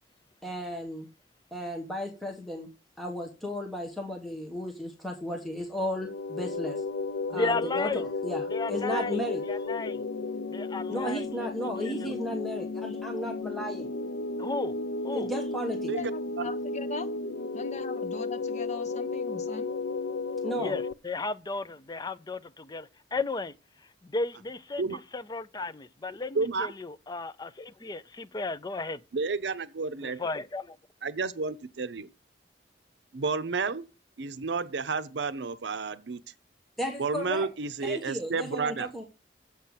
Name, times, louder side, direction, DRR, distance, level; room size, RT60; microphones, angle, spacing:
voice 1, 0.4-1.1 1.5-2.7 3.0-6.8 7.3-9.4 10.9-13.9 15.1-15.9 20.4-20.8 36.8-37.5 37.8-39.0, equal, ahead, 1.2 m, -34 dB
sound 1, 5.9-20.9, left 3 dB, 90° left, 0.5 m, -33 dB
voice 2, 7.3-8.0 8.5-10.0 10.5-12.2 14.4-14.8 15.0-15.3 20.6-23.5 24.0-29.0 30.0-30.8, left 3 dB, 25° left, 0.5 m, -34 dB
voice 3, 15.9-17.1 17.5-19.7, left 4 dB, 40° left, 1.0 m, -40 dB
voice 4, 26.4-26.7 29.1-30.2 31.0-32.1 33.1-33.9 34.2-36.2 37.0-38.9, right 4 dB, 75° right, 0.7 m, -31 dB
7.5 x 5.6 x 7.3 m
head